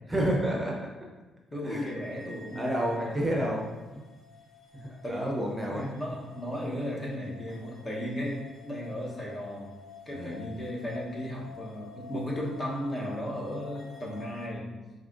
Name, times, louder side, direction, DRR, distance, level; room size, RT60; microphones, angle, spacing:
voice 1, 0.1-0.9 1.6-1.9 2.3-4.0 4.7-5.9 10.1-10.4, right 1 dB, 15° right, -1 dB, 0.7 m, -30 dB
voice 2, 1.5-3.5 5.0-5.4 5.7-9.7 10.1-14.7, equal, 30° left, -3 dB, 1.0 m, -35 dB
sound 1, 1.9-14.5, left 6 dB, 50° left, 0.7 m, -50 dB
4.8 x 2.9 x 2.5 m, 1.2 s
cardioid pair, 90°, 0 cm